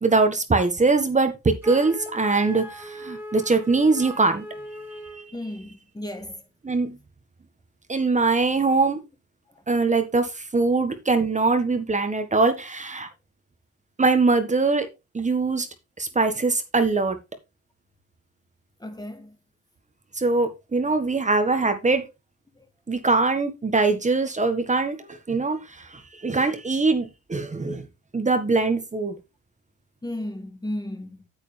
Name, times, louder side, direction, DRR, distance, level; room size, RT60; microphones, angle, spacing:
voice 1, 0.0-4.4 6.6-7.0 7.9-9.0 9.7-13.1 14.0-14.9 15.1-15.7 16.0-17.2 20.2-22.0 22.9-25.6 25.9-27.8 28.1-29.2, right 3 dB, 25° right, 1.6 m, -22 dB
Wind instrument woodwind instrument, 1.6-5.3, right 1 dB, 5° right, 2.5 m, -39 dB
voice 2, 5.3-6.4 18.8-19.4 30.0-31.3, left 1 dB, 15° left, 1.5 m, -34 dB
8.9 x 8.1 x 3.4 m
cardioid pair, 90°, 30 cm